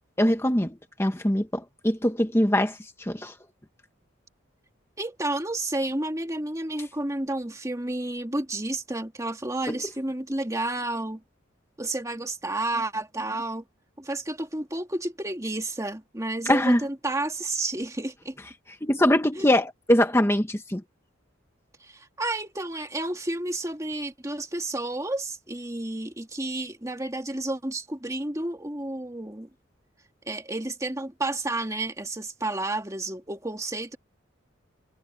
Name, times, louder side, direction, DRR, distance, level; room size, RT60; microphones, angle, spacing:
voice 1, 0.2-0.7 1.0-3.3 9.7-9.8 16.5-16.8 18.8-20.8, left 1 dB, 15° left, 1.2 m, -22 dB
voice 2, 5.0-11.2 11.8-13.6 14.0-18.4 19.4-19.5 21.8-29.5 30.3-34.0, right 2 dB, 15° right, 2.0 m, -31 dB
head